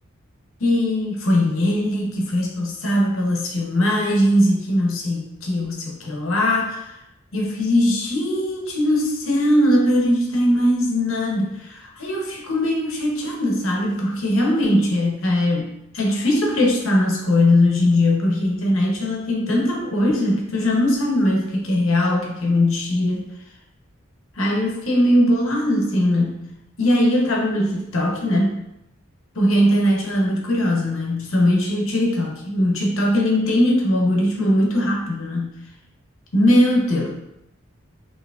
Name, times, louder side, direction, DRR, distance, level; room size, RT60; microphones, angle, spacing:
voice 1, 0.6-6.9 7.3-23.3 24.4-26.4 26.8-28.6 29.3-35.6 36.3-37.1, left 1 dB, 90° left, -1 dB, 0.9 m, -20 dB
5.7 x 2.9 x 2.4 m, 0.85 s
head